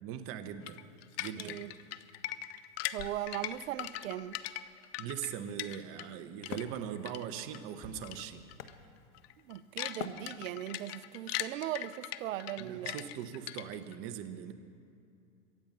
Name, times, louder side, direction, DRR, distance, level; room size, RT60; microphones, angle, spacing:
voice 1, 0.0-0.8 1.2-1.6 5.0-8.4 12.6-14.5, right 9 dB, 35° right, 0.9 m, -40 dB
sound 1, 0.7-6.2 6.4-7.6 8.0-8.2 8.5-8.7 9.1-13.9, left 15 dB, 50° left, 0.6 m, -40 dB
voice 2, 1.4-1.7 2.9-4.4 9.4-13.0, right 13 dB, 75° right, 0.7 m, -39 dB
Wood, 5.8-9.4 10.0-10.9, left 8 dB, 90° left, 1.1 m, -46 dB
Motor vehicle (road), 7.7-12.3, left 1 dB, 10° right, 2.8 m, -62 dB
23.0 x 8.8 x 5.4 m
supercardioid pair, 140°, 40 cm